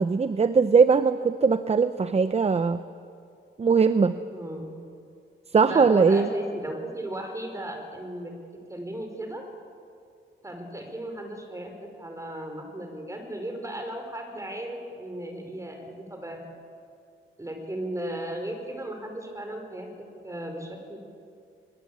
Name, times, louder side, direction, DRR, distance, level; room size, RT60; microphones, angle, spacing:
voice 1, 0.0-2.8 3.6-4.1 5.5-6.3, right 5 dB, 30° right, 12 dB, 0.7 m, -20 dB
voice 2, 4.3-4.7 5.6-8.3 8.7-9.4 10.4-16.4 17.4-21.0, right 1 dB, 15° right, 3 dB, 4.9 m, -36 dB
24.0 x 22.5 x 8.6 m, 2.3 s
wide cardioid pair, 115°, 21 cm